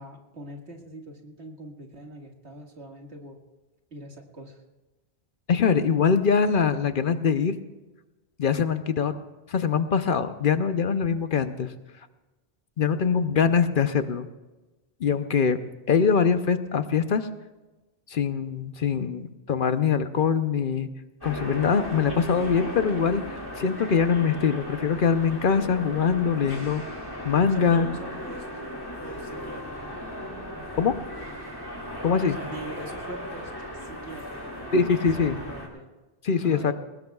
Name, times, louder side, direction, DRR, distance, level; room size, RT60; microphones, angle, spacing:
voice 1, 0.0-3.4 3.9-4.6 27.5-28.5 29.0-29.9 32.3-34.9 35.1-35.9 36.4-36.7, right 1 dB, 90° right, 2 dB, 2.2 m, -43 dB
voice 2, 5.5-7.6 8.4-9.1 9.5-11.7 12.8-14.3 15.0-15.6 15.9-17.3 18.1-20.9 21.2-27.0 27.2-27.9 30.8-31.0 32.0-32.4 34.7-35.4 36.2-36.7, left 6 dB, 55° left, 10 dB, 0.9 m, -23 dB
sound 1, 21.2-35.7, equal, 20° left, 2.8 m, -36 dB
21.5 x 19.5 x 2.4 m, 1.1 s
omnidirectional pair, 1.1 m